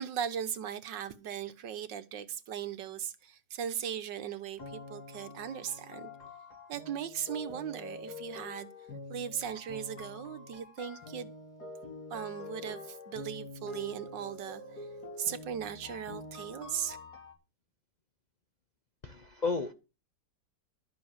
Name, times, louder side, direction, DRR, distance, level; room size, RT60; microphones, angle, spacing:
voice 1, 0.0-6.1 6.7-8.7 9.1-11.3 12.1-14.9 15.2-17.0, right 9 dB, 80° right, 1.7 m, -38 dB
sound 1, 4.6-17.3, left 2 dB, 60° left, 5.0 m, -46 dB
voice 2, 19.0-19.7, left 4 dB, 35° left, 0.7 m, -32 dB
12.0 x 7.7 x 7.1 m
omnidirectional pair, 1.9 m